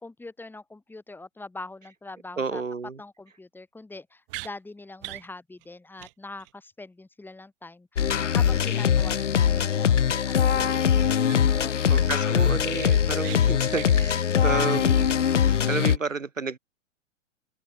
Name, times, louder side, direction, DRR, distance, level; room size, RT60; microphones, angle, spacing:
voice 1, 0.0-2.6 3.0-11.9, left 2 dB, 5° left, 2.7 m, -43 dB
voice 2, 2.4-3.0 11.9-16.6, right 4 dB, 80° right, 5.1 m, -31 dB
sound 1, 4.3-4.5 5.0-5.3 5.6-5.7 6.0-6.1 6.4-6.5 10.7-10.8 11.2-11.6 12.0-12.1 12.5-13.4 13.7-13.9, right 23 dB, 45° right, 5.5 m, -39 dB
sound 2, 8.0-16.0, left 8 dB, 70° left, 1.8 m, -22 dB
figure-of-eight pair, 105°, 38 cm